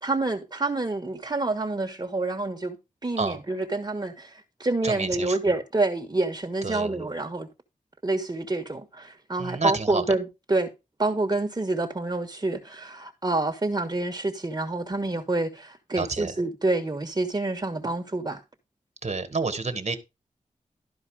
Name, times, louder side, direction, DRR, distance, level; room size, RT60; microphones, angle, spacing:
voice 1, 0.0-2.8 3.0-7.5 8.0-10.7 11.0-18.4, right 2 dB, 30° right, 1.4 m, -27 dB
voice 2, 4.8-5.4 6.6-7.0 9.4-10.1 15.9-16.3 19.0-20.0, right 4 dB, 50° right, 1.6 m, -29 dB
12.5 x 4.8 x 4.8 m
cardioid pair, 55°, 14 cm